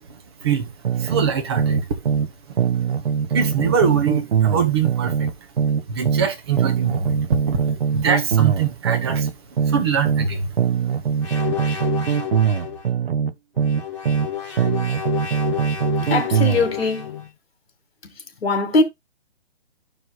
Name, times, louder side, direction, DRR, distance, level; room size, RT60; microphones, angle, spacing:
voice 1, 0.4-0.7 1.0-1.9 3.3-5.3 5.9-9.3 9.7-10.5, right 6 dB, 25° right, 0.9 m, -23 dB
sound 1, 0.9-2.3 2.6-6.3 6.6-10.3 10.6-14.3 14.6-16.7, right 7 dB, 55° right, 0.7 m, -22 dB
sound 2, 11.2-12.8 13.6-17.2, left 9 dB, 25° left, 1.9 m, -30 dB
voice 2, 16.1-17.2 18.4-18.8, left 3 dB, 60° left, 2.1 m, -20 dB
13.5 x 4.7 x 2.3 m
hypercardioid pair, 160°, 34 cm